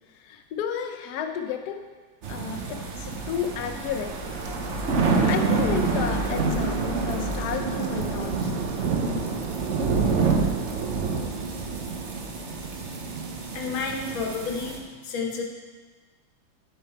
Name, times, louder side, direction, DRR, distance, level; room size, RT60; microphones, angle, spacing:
voice 1, 0.1-1.9 2.3-4.2 5.2-8.5, left 8 dB, 70° left, 5 dB, 1.0 m, -32 dB
sound 1, 2.2-14.8, right 4 dB, 55° right, 0.8 m, -27 dB
sound 2, 6.2-14.8, right 4 dB, 15° left, 1.7 m, -41 dB
voice 2, 13.5-14.7 15.0-15.4, left 4 dB, 90° left, 2 dB, 1.7 m, -30 dB
8.6 x 4.8 x 4.4 m, 1.4 s
omnidirectional pair, 2.1 m